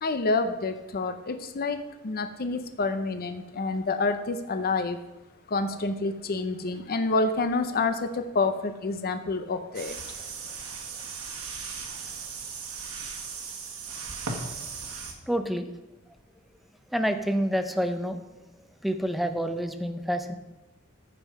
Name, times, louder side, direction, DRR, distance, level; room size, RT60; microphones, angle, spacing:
voice 1, 0.0-5.0 5.5-10.0, left 3 dB, 45° left, 8 dB, 0.6 m, -28 dB
sound 1, 9.7-15.1, right 5 dB, 85° right, 1.7 m, -37 dB
voice 2, 15.3-15.7 16.9-18.2 18.8-20.3, equal, ahead, 7 dB, 0.7 m, -28 dB
14.5 x 5.6 x 4.7 m, 1.0 s
head